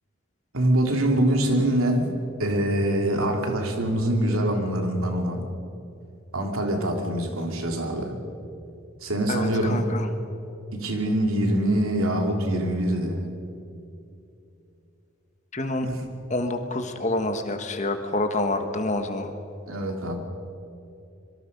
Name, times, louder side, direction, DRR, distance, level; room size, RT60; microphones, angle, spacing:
voice 1, 0.5-2.1 2.4-5.5 6.3-8.2 9.0-9.8 10.7-13.3 15.8-16.0 19.7-20.1, right 1 dB, 80° right, 3 dB, 3.1 m, -24 dB
voice 2, 9.3-10.1 15.5-15.9 16.3-19.3, left 2 dB, 35° left, 7 dB, 1.5 m, -27 dB
26.0 x 23.0 x 5.4 m, 2.7 s
head